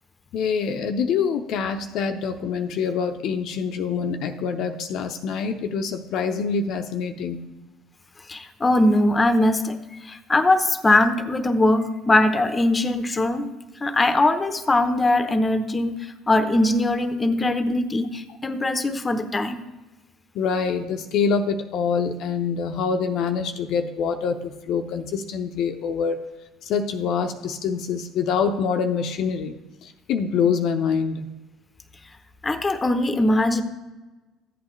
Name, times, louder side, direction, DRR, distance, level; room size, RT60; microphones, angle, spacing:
voice 1, 0.3-7.5 20.3-26.2 26.7-29.5 30.1-31.3, left 6 dB, 65° left, 6 dB, 0.7 m, -25 dB
voice 2, 8.3-9.8 10.1-13.4 13.8-16.0 16.3-19.6 32.4-33.6, left 2 dB, 25° left, 9 dB, 0.9 m, -21 dB
13.5 x 8.4 x 3.2 m, 1.1 s
hypercardioid pair, 70°, 0 cm